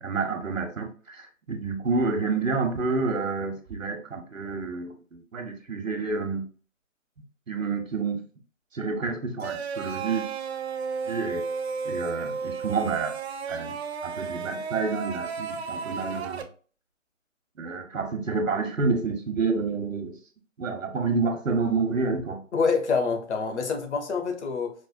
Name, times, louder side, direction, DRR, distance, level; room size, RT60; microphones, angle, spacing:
voice 1, 0.0-6.4 7.5-8.2 8.7-10.3 11.1-11.4 11.8-13.2 13.5-13.8 14.0-16.4 17.6-20.2 20.6-22.4, right 4 dB, 75° right, 1.0 m, -29 dB
sound 1, 9.4-16.4, right 5 dB, 55° right, 0.5 m, -33 dB
voice 2, 22.5-24.7, left 5 dB, 60° left, 1.0 m, -26 dB
4.8 x 2.1 x 2.4 m
figure-of-eight pair, 145°, 39 cm